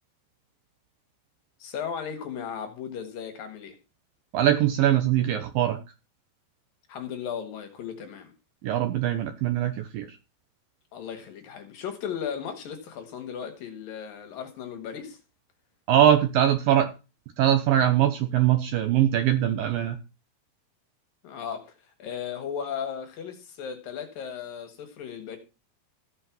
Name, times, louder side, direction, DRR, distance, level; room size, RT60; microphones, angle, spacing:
voice 1, 1.6-3.8 6.9-8.3 10.9-15.2 21.2-21.7 22.0-25.4, left 7 dB, 60° left, 3.0 m, -36 dB
voice 2, 4.3-5.8 8.6-10.2 15.9-16.9 17.4-20.0, right 11 dB, 75° right, 2.2 m, -22 dB
15.0 x 5.5 x 5.8 m
omnidirectional pair, 4.9 m